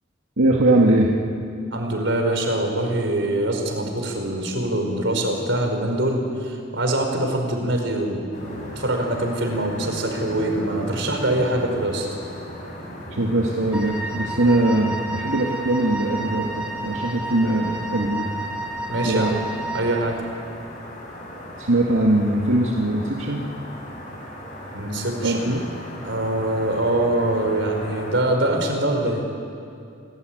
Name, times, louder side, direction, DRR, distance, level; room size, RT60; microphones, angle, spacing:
voice 1, 0.4-1.1 13.1-18.3 19.0-19.3 21.6-23.4 25.2-25.6, right 1 dB, 90° right, -1 dB, 2.1 m, -21 dB
voice 2, 1.7-8.3 8.8-12.1 18.9-19.4 19.7-20.2 24.7-25.6 26.0-29.2, right 1 dB, 65° right, 3 dB, 5.0 m, -24 dB
sound 1, 8.3-28.2, equal, 40° left, 6.7 m, -37 dB
Wind instrument woodwind instrument, 13.7-20.1, right 2 dB, 5° right, 2.1 m, -31 dB
29.0 x 18.5 x 9.4 m, 2.5 s
head